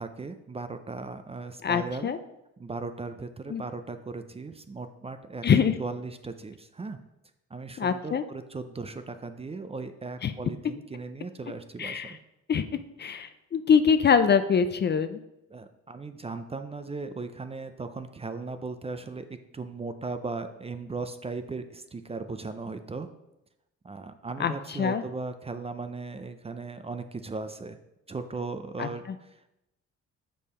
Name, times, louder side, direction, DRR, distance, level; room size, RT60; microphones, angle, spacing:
voice 1, 0.0-2.1 2.6-5.4 5.8-7.0 7.5-12.2 15.5-23.1 23.8-27.8 28.1-29.5, right 3 dB, 20° right, 9 dB, 0.5 m, -37 dB
voice 2, 1.6-2.2 3.5-3.6 5.4-5.7 7.8-8.2 10.2-10.3 11.8-12.1 12.5-12.6 13.0-15.2 24.4-24.5 24.8-25.0 28.8-28.9, left 6 dB, 35° left, 11 dB, 0.4 m, -23 dB
6.5 x 5.4 x 4.3 m, 0.90 s
cardioid pair, 90°, 30 cm